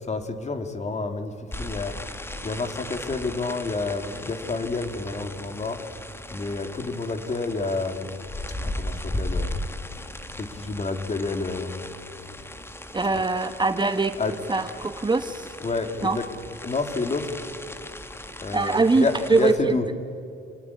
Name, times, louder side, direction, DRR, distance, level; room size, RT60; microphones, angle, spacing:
voice 1, 0.1-2.0 2.4-5.8 6.3-8.2 8.6-9.6 10.4-11.9 13.1-13.2 14.2-14.4 15.4-16.3 16.6-17.3 18.4-19.9, left 3 dB, 35° left, 7 dB, 2.8 m, -29 dB
sound 1, 1.5-19.6, left 1 dB, 10° left, 1.6 m, -37 dB
voice 2, 12.9-14.2 14.5-15.5 16.0-16.2 18.5-19.7, right 3 dB, 20° right, 9 dB, 1.2 m, -22 dB
28.0 x 19.0 x 8.6 m, 2.7 s
cardioid pair, 90°, 20 cm